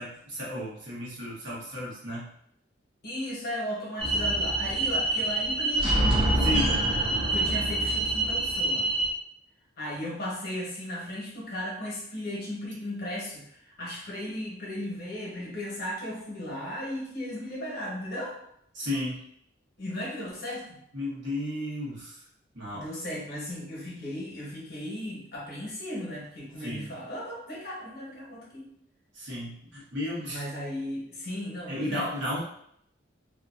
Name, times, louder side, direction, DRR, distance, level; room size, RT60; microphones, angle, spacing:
voice 1, 0.0-2.3 6.4-6.9 18.7-19.3 20.9-22.2 22.5-22.9 26.6-26.9 29.1-30.4 31.7-32.4, left 1 dB, 75° right, -6 dB, 1.2 m, -34 dB
voice 2, 3.0-6.0 7.3-8.9 9.8-18.4 19.8-20.8 22.7-28.7 30.3-32.1, left 1 dB, 55° left, -5 dB, 1.0 m, -36 dB
sound 1, 4.0-9.1, right 2 dB, 30° right, 0.6 m, -25 dB
2.8 x 2.4 x 2.4 m, 0.71 s
head